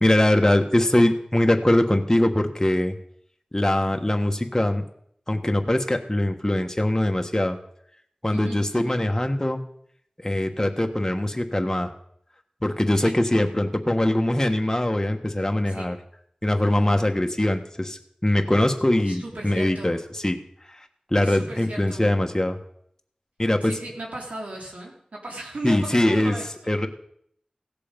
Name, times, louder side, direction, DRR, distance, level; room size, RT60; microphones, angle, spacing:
voice 1, 0.0-2.9 3.5-4.8 5.3-7.6 8.2-9.6 10.2-11.9 12.6-16.0 16.4-20.0 20.2-20.4 21.1-22.6 23.4-23.8 25.6-26.3 26.7-26.9, left 1 dB, 20° left, 5 dB, 1.4 m, -22 dB
voice 2, 8.3-9.1 12.9-13.2 15.7-16.0 19.0-20.0 21.2-22.1 23.6-26.7, right 2 dB, 85° right, -1 dB, 3.2 m, -37 dB
16.0 x 6.8 x 5.2 m, 0.69 s
wide cardioid pair, 45°, 2 cm